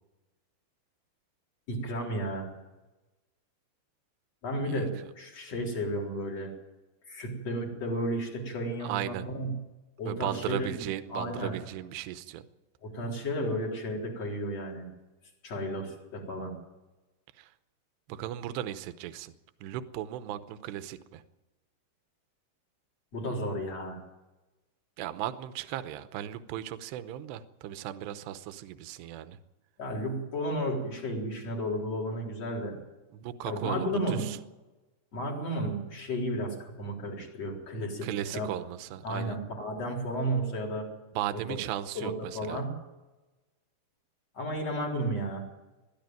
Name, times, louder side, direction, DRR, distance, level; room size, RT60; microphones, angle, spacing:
voice 1, 1.7-2.5 4.4-6.5 7.1-9.6 10.0-10.8 11.1-11.5 12.8-14.9 15.4-16.5 23.1-24.0 29.8-32.8 33.4-34.3 35.1-38.5 39.0-40.9 41.3-41.6 41.9-42.7 44.3-45.4, equal, 35° left, -1 dB, 4.8 m, -33 dB
voice 2, 8.8-9.2 10.0-12.4 17.4-17.5 18.1-19.3 19.6-21.2 25.0-29.4 33.1-34.4 38.0-39.4 41.1-42.6, right 12 dB, 75° right, 12 dB, 2.9 m, -36 dB
22.0 x 13.0 x 9.2 m, 1.1 s
omnidirectional pair, 5.2 m